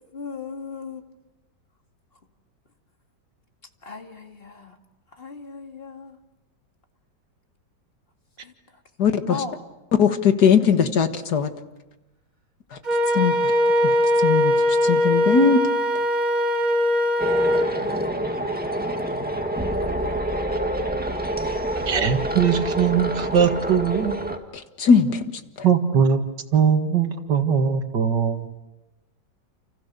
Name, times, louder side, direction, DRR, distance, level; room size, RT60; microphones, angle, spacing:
voice 1, 0.1-1.0 3.8-4.8 5.2-6.2 8.4-8.5 9.2-9.6, left 5 dB, 30° left, 5 dB, 2.3 m, -36 dB
voice 2, 9.0-9.4 10.0-11.5 13.1-13.4 13.8-13.9 14.2-15.6 24.8-25.2, left 6 dB, 65° left, 8 dB, 2.2 m, -19 dB
Wind instrument woodwind instrument, 12.8-17.7, left 1 dB, 25° right, 4.0 m, -20 dB
sound 1, 17.2-24.4, right 1 dB, 5° right, 1.8 m, -27 dB
voice 3, 21.8-24.2 25.6-26.2 26.5-28.4, right 7 dB, 75° right, 7 dB, 2.5 m, -20 dB
29.5 x 29.5 x 6.8 m, 1.0 s
omnidirectional pair, 1.9 m